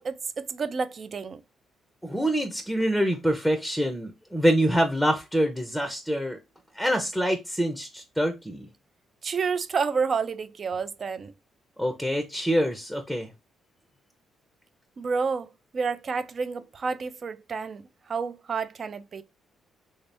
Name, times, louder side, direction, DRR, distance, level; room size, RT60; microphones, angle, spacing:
voice 1, 0.0-1.4 9.2-11.3 15.0-19.2, right 5 dB, 45° right, 0.4 m, -30 dB
voice 2, 2.0-6.4 6.8-8.7 11.8-13.3, equal, ahead, 0.6 m, -25 dB
3.4 x 2.8 x 3.3 m
cardioid pair, 90°, 0 cm